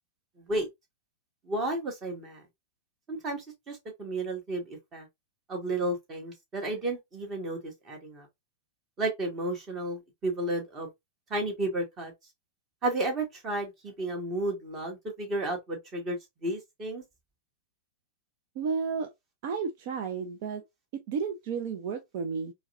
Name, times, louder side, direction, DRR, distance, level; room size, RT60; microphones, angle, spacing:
voice 1, 0.4-0.7 1.5-2.4 3.1-5.1 5.5-8.3 9.0-10.9 11.3-12.1 12.8-17.0, right 1 dB, 30° right, 1.6 m, -32 dB
voice 2, 18.6-19.1 19.4-20.6 21.1-22.5, right 5 dB, 50° right, 0.6 m, -32 dB
4.6 x 2.3 x 2.6 m
figure-of-eight pair, 100°, 0 cm